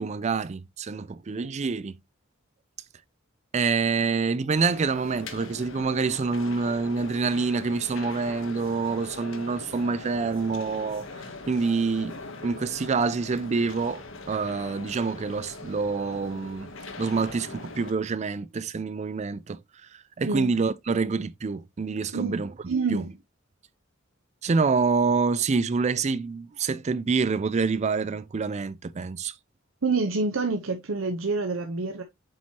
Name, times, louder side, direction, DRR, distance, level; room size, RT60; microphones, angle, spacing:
voice 1, 0.0-2.0 3.5-11.1 11.5-12.2 12.4-16.7 17.0-19.6 19.9-23.0 24.4-29.3, right 4 dB, 35° right, 0.4 m, -27 dB
sound 1, 4.5-17.9, left 3 dB, 65° left, 1.1 m, -41 dB
voice 2, 22.7-23.1 29.8-32.0, right 4 dB, 80° right, 0.8 m, -27 dB
7.6 x 4.4 x 2.8 m
head